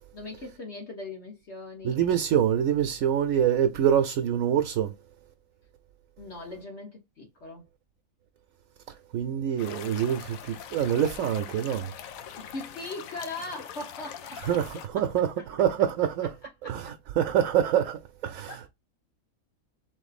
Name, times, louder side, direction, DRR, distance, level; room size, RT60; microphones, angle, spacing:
voice 1, 0.1-1.9 6.2-7.6 12.4-14.6 14.9-15.0 15.4-15.5 16.4-16.9 18.5-18.7, left 2 dB, 55° left, 1.4 m, -40 dB
voice 2, 1.8-4.9 9.1-11.9 14.5-16.3 16.6-18.7, right 9 dB, 75° right, 1.0 m, -25 dB
sound 1, 9.6-14.9, left 9 dB, 80° left, 1.0 m, -42 dB
3.8 x 3.2 x 4.1 m
omnidirectional pair, 1.4 m